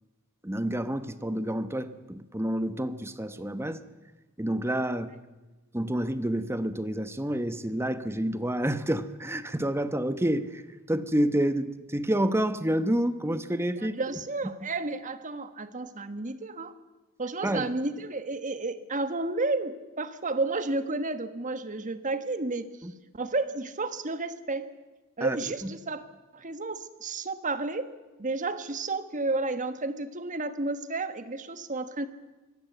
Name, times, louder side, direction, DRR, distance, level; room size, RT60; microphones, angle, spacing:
voice 1, 0.4-3.8 4.4-5.1 5.7-10.6 10.9-13.9 17.4-17.7 22.8-22.9 25.2-25.7, right 1 dB, 10° right, 11 dB, 1.0 m, -29 dB
voice 2, 13.9-16.7 17.2-22.7 23.1-24.7 25.2-26.0 26.3-27.9 28.2-32.1, right 3 dB, 35° right, 11 dB, 1.4 m, -31 dB
24.0 x 16.5 x 8.1 m, 1.2 s
head